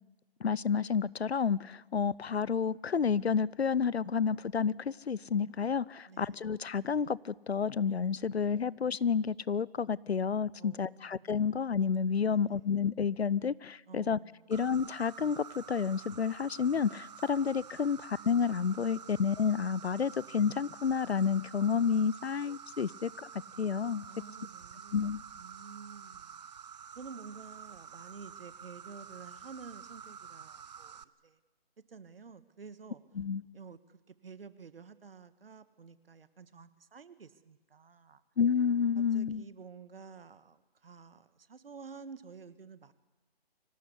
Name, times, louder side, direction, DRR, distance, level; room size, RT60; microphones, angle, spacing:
voice 1, 0.4-14.2 14.5-23.3 23.6-24.0 24.9-25.2 33.2-33.4 38.4-39.4, left 6 dB, 90° left, 0.7 m, -30 dB
voice 2, 6.1-6.4 10.6-11.3 12.3-12.6 13.9-14.5 24.1-26.5 26.9-31.4 31.9-33.0 33.5-38.2 38.9-42.9, right 5 dB, 65° right, 1.6 m, -51 dB
Insect, 14.5-31.0, right 7 dB, 40° right, 0.7 m, -49 dB
25.0 x 17.5 x 8.4 m
figure-of-eight pair, 150°, 31 cm